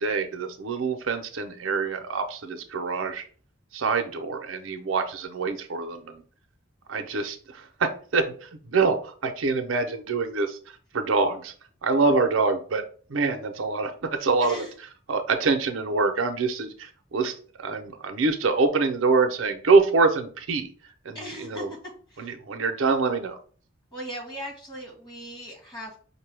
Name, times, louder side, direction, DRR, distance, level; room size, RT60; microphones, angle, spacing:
voice 1, 0.0-3.2 3.7-6.2 6.9-10.6 10.9-11.5 11.8-12.8 13.1-13.9 14.2-14.6 15.1-17.3 17.6-20.7 21.0-21.7 22.2-23.4, right 4 dB, 90° right, 6 dB, 0.6 m, -25 dB
voice 2, 14.4-14.7 21.1-22.3 23.9-26.0, equal, 20° left, -1 dB, 1.4 m, -38 dB
5.1 x 2.2 x 3.3 m, 0.43 s
head